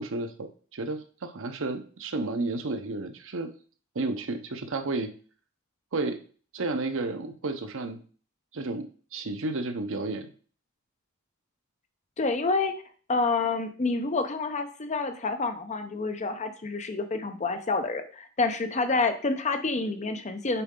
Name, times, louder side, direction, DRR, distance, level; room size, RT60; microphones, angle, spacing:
voice 1, 0.0-3.5 3.9-5.1 5.9-6.2 6.5-8.0 8.5-10.3, right 2 dB, 65° right, 8 dB, 0.7 m, -32 dB
voice 2, 12.2-12.7 13.1-20.6, left 3 dB, 35° left, 8 dB, 0.7 m, -28 dB
6.9 x 4.7 x 3.7 m, 0.42 s
head